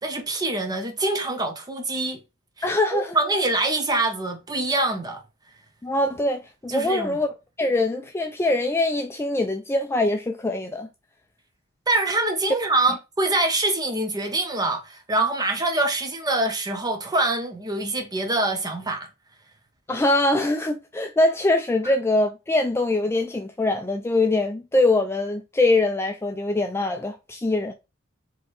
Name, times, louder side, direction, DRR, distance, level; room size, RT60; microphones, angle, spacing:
voice 1, 0.0-2.2 2.6-5.2 6.7-7.2 11.9-19.1, right 2 dB, 20° right, 0.8 m, -25 dB
voice 2, 2.6-3.2 5.8-7.3 7.6-10.9 19.9-27.7, left 2 dB, 10° left, 0.3 m, -23 dB
4.5 x 3.1 x 3.1 m
head